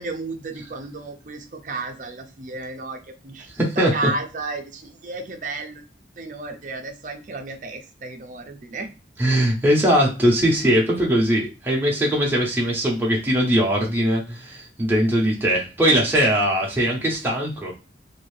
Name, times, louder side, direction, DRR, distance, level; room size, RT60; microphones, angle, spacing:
voice 1, 0.0-3.5 3.8-5.8 6.2-8.9, right 3 dB, 45° right, 5 dB, 0.5 m, -33 dB
voice 2, 3.6-3.9 9.2-17.7, equal, 10° right, -3 dB, 0.8 m, -20 dB
2.7 x 2.6 x 3.1 m, 0.30 s
head